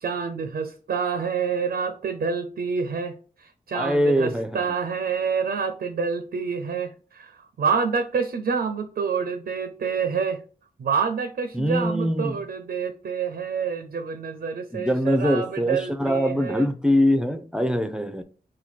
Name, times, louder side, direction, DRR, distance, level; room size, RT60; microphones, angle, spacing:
voice 1, 0.0-3.1 3.4-10.4 10.8-16.6, right 6 dB, 80° right, 0.5 m, -27 dB
voice 2, 3.7-4.6 11.5-12.4 14.7-18.2, equal, 5° right, 0.5 m, -23 dB
4.3 x 2.2 x 4.1 m
cardioid pair, 45°, 16 cm